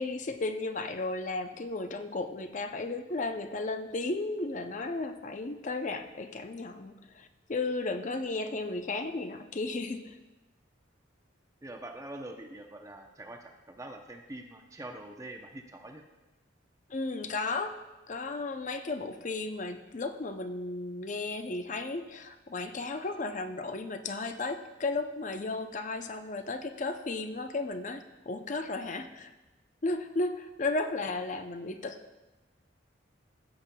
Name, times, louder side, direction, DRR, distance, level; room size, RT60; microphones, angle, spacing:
voice 1, 0.0-10.2 16.9-17.8 18.1-29.3 29.8-32.2, left 3 dB, 40° left, 8 dB, 0.5 m, -34 dB
voice 2, 11.6-16.0, right 1 dB, 15° right, 4 dB, 0.6 m, -44 dB
15.0 x 7.4 x 2.3 m, 1.1 s
head